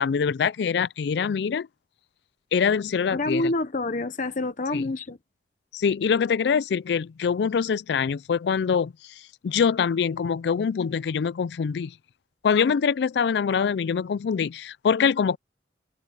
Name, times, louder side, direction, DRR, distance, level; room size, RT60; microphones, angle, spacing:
voice 1, 0.0-1.7 2.5-3.4 4.7-4.9 5.7-8.9 9.4-11.9 12.4-15.4, left 6 dB, 65° left, 0.4 m, -24 dB
voice 2, 3.1-5.2, left 2 dB, 45° left, 0.8 m, -27 dB
head